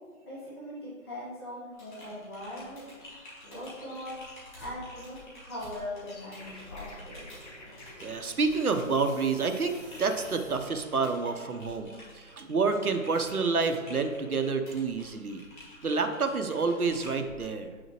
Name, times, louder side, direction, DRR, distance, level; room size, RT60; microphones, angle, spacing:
voice 1, 0.2-2.9 3.4-4.2 4.6-7.2, left 1 dB, 15° left, -10 dB, 1.5 m, -40 dB
Typing, 1.7-17.4, left 1 dB, 35° left, 2.3 m, -50 dB
sound 1, 3.0-9.6, left 2 dB, 55° left, 1.3 m, -55 dB
sound 2, 4.5-4.8 5.6-11.0, equal, 5° right, 1.5 m, -50 dB
voice 2, 8.0-15.4 15.8-17.7, right 4 dB, 85° right, 6 dB, 1.0 m, -29 dB
8.7 x 6.3 x 3.0 m, 1.5 s
figure-of-eight pair, 165°, 43 cm